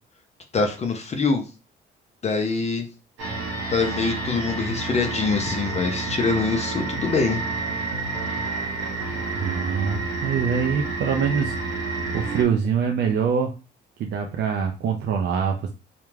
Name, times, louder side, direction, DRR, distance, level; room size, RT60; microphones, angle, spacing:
voice 1, 0.5-1.4 2.2-2.9 3.7-7.4, left 4 dB, 35° left, 4 dB, 0.4 m, -24 dB
sound 1, 3.2-12.4, right 3 dB, 90° right, 0.9 m, -29 dB
voice 2, 9.3-11.6 12.1-13.5 14.0-15.7, right 6 dB, 60° right, 3 dB, 0.4 m, -24 dB
2.4 x 2.1 x 3.1 m, 0.32 s
cardioid pair, 90°, 20 cm